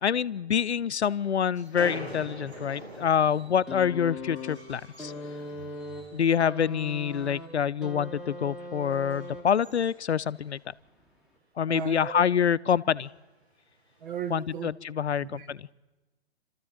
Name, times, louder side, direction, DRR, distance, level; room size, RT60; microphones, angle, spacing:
voice 1, 0.0-5.1 6.1-10.7 11.6-13.1 14.3-15.7, left 8 dB, 85° left, 0.6 m, -26 dB
sound 1, 1.6-6.4 6.7-7.6 8.0-8.2 8.8-10.7 11.0-11.1 11.4-11.5 11.8-12.2 13.0-13.1 14.0-14.3, right 1 dB, 70° right, 6.2 m, -45 dB
sound 2, 3.7-9.8 10.9-11.0, left 2 dB, ahead, 1.6 m, -40 dB
voice 2, 11.7-12.2 14.0-14.7 15.2-15.5, right 8 dB, 50° right, 1.5 m, -36 dB
28.0 x 13.5 x 7.9 m
figure-of-eight pair, 125°, 32 cm